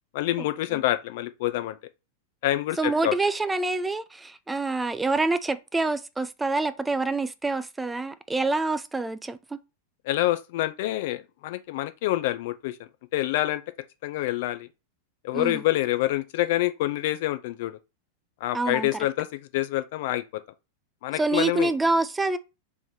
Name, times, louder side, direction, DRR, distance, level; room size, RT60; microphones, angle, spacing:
voice 1, 0.1-1.8 2.4-3.1 10.0-12.8 13.1-13.6 14.0-14.7 15.2-17.8 18.4-19.3 19.5-20.4 21.0-21.7, left 15 dB, 55° left, 0.5 m, -27 dB
voice 2, 2.8-9.4 15.3-15.6 18.5-18.9 21.2-22.4, right 3 dB, 10° right, 0.3 m, -26 dB
3.5 x 3.2 x 4.2 m
figure-of-eight pair, 90°, 0 cm